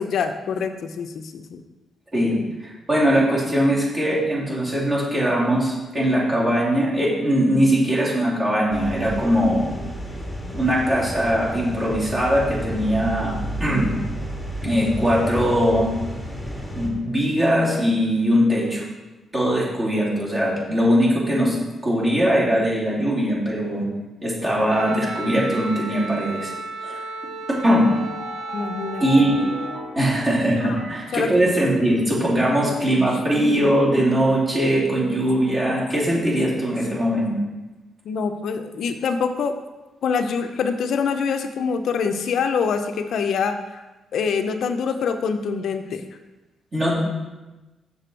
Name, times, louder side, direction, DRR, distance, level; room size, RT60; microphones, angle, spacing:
voice 1, 0.0-1.6 2.3-2.5 28.5-29.3 31.1-31.3 38.0-39.6 40.0-43.8 44.1-46.1, left 6 dB, 70° left, 8 dB, 0.6 m, -25 dB
voice 2, 2.6-9.7 10.5-13.3 13.6-13.9 14.6-15.9 16.7-18.8 19.3-21.6 21.8-23.8 24.2-26.5 26.8-27.0 27.6-27.9 29.0-29.3 30.0-37.3 46.7-47.0, equal, 30° right, -5 dB, 2.8 m, -21 dB
sound 1, 8.7-16.9, equal, ahead, 1.4 m, -31 dB
Wind instrument woodwind instrument, 24.7-29.8, right 3 dB, 75° right, 0.6 m, -33 dB
sound 2, 27.9-32.3, equal, 55° right, 1.4 m, -38 dB
6.8 x 6.8 x 4.5 m, 1.1 s
cardioid pair, 135°, 0 cm